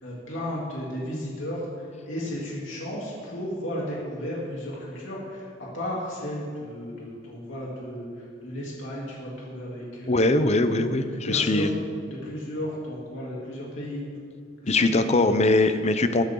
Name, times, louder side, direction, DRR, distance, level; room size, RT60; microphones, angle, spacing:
voice 1, 0.0-10.2 11.2-11.8 12.1-14.0 14.6-15.1, equal, 70° left, -5 dB, 3.2 m, -34 dB
voice 2, 10.1-11.7 14.7-16.2, left 2 dB, 35° left, 10 dB, 0.7 m, -21 dB
21.0 x 9.5 x 3.9 m, 2.2 s
head